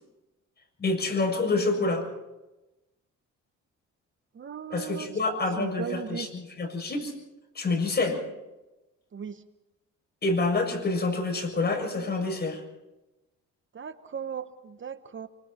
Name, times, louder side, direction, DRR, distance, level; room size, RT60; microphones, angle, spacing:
voice 1, 0.8-2.1 4.7-7.1 7.6-8.2 10.2-12.6, left 3 dB, 35° left, 2 dB, 7.0 m, -27 dB
voice 2, 4.3-5.2 5.6-6.3 9.1-9.4 13.7-15.3, right 7 dB, 40° right, 11 dB, 1.1 m, -37 dB
26.5 x 25.0 x 4.4 m, 1.0 s
cardioid pair, 90°, 30 cm